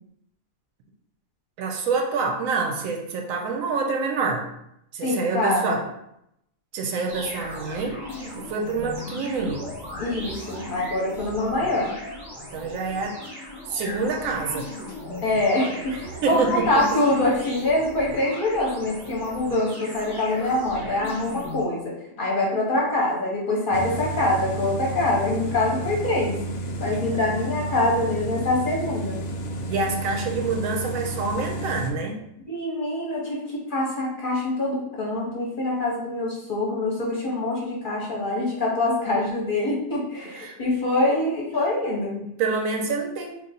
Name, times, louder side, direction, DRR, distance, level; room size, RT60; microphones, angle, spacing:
voice 1, 1.6-4.5 4.9-5.8 6.7-8.0 8.3-9.7 12.5-13.2 13.7-14.7 16.2-16.7 29.7-32.2 40.4-40.6 42.4-43.4, right 4 dB, 90° right, 2 dB, 1.0 m, -26 dB
voice 2, 5.0-5.8 10.0-12.0 15.2-26.4 26.8-29.2 32.5-42.2, left 2 dB, 50° left, -3 dB, 0.7 m, -25 dB
sound 1, 7.1-21.6, left 1 dB, 20° right, 0.9 m, -38 dB
sound 2, 23.7-31.9, right 1 dB, 85° left, 0.4 m, -31 dB
3.0 x 2.4 x 4.0 m, 0.80 s
omnidirectional pair, 1.4 m